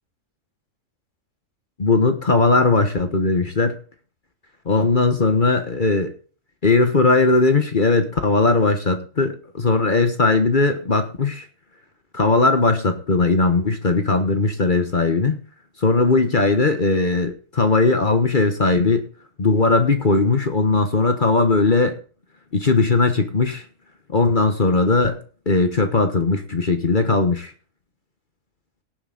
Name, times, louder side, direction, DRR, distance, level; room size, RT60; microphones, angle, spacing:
voice 1, 1.8-3.8 4.6-6.1 6.6-11.5 12.1-15.4 15.8-19.1 19.4-22.0 22.5-23.6 24.1-27.5, left 3 dB, 40° left, 7 dB, 1.3 m, -19 dB
17.5 x 8.0 x 4.0 m, 0.39 s
omnidirectional pair, 1.4 m